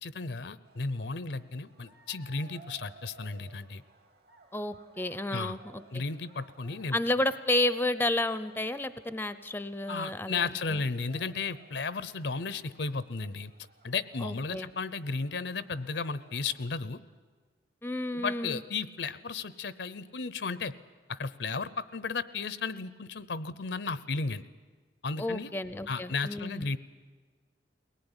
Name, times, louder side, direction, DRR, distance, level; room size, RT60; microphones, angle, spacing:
voice 1, 0.0-3.8 5.3-5.6 5.9-7.0 9.9-13.5 13.8-17.0 18.1-20.7 21.1-24.4 25.0-25.5 25.9-26.8, left 4 dB, 75° left, 15 dB, 0.8 m, -34 dB
sound 1, 0.6-16.7, right 3 dB, 60° right, 2.6 m, -58 dB
voice 2, 4.5-6.0 6.9-10.8 14.2-14.7 17.8-18.6 25.2-26.7, left 1 dB, 10° left, 13 dB, 0.6 m, -31 dB
22.0 x 18.5 x 9.9 m, 1.5 s
head